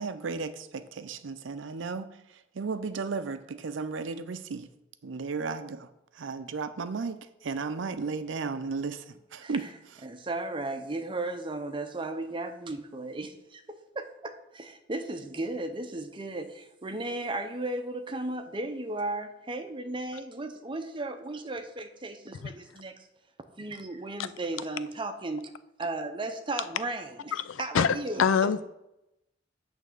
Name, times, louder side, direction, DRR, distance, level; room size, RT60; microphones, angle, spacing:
voice 1, 0.0-4.7 5.0-5.9 6.1-9.6, right 4 dB, 70° right, 0.5 m, -34 dB
voice 2, 10.0-23.1 23.6-25.5 25.8-28.6, right 2 dB, 25° right, 0.6 m, -35 dB
voice 3, 27.5-28.6, left 6 dB, 85° left, 0.4 m, -25 dB
8.4 x 3.4 x 6.6 m
head